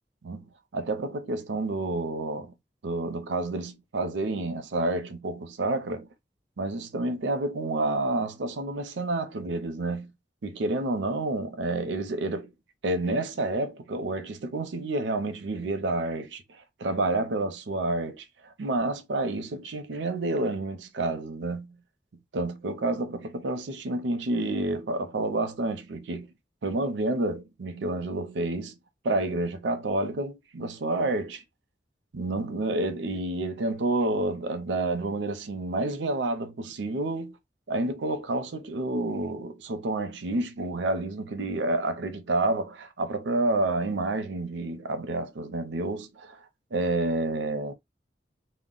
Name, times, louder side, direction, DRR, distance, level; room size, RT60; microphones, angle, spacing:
voice 1, 0.2-2.5 2.8-6.1 6.6-10.1 10.4-12.5 12.8-21.8 22.3-26.3 26.6-28.8 29.0-31.4 32.1-37.4 37.7-46.4 46.7-47.7, right 2 dB, 85° right, 0.5 m, -29 dB
2.1 x 2.0 x 3.7 m
head